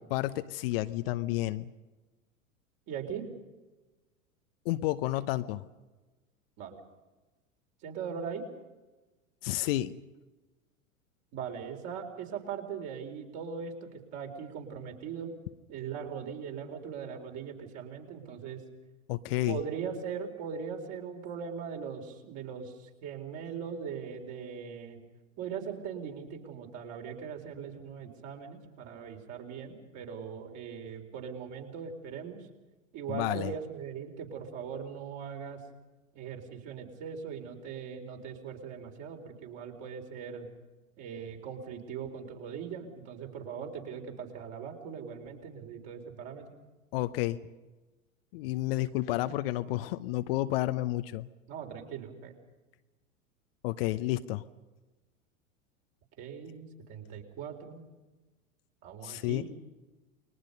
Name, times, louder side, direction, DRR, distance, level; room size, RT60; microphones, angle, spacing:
voice 1, 0.1-1.7 4.6-5.7 9.4-10.0 19.1-19.6 33.1-33.5 46.9-47.4 48.3-51.3 53.6-54.4 59.0-59.4, left 16 dB, 45° left, 12 dB, 0.9 m, -31 dB
voice 2, 2.9-3.2 6.6-6.8 7.8-8.5 11.3-15.3 15.7-18.6 19.5-25.0 25.4-32.4 32.9-35.6 36.1-40.5 41.0-46.5 51.5-52.3 56.2-57.8 58.8-59.5, right 7 dB, 40° right, 3 dB, 4.2 m, -40 dB
29.5 x 22.0 x 5.4 m, 1.2 s
figure-of-eight pair, 90°, 42 cm